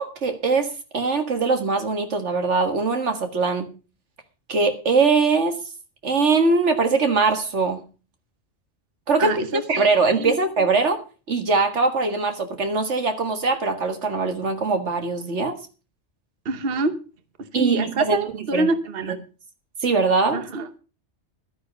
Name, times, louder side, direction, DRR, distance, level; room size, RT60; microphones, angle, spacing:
voice 1, 0.0-3.7 4.5-5.6 6.0-7.9 9.1-11.0 11.3-15.6 17.5-18.7 19.0-19.2 19.8-20.4, right 4 dB, 90° right, 7 dB, 2.1 m, -22 dB
voice 2, 9.2-9.9 10.1-10.3 16.4-16.9 17.5-19.2 20.3-20.7, right 3 dB, 60° right, 10 dB, 1.2 m, -26 dB
12.0 x 9.9 x 5.2 m, 0.34 s
omnidirectional pair, 1.2 m